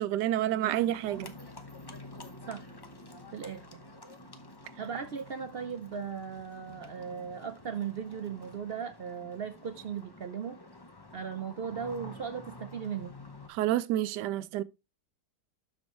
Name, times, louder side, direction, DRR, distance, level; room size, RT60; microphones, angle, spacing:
voice 1, 0.0-1.3 13.5-14.6, right 13 dB, 85° right, 1.2 m, -29 dB
Livestock farm animals working animals, 0.7-13.5, left 2 dB, 30° left, 0.4 m, -49 dB
voice 2, 3.3-3.8 4.8-10.6 11.1-13.1, right 7 dB, 65° right, 0.5 m, -37 dB
12.5 x 4.5 x 3.0 m
omnidirectional pair, 1.8 m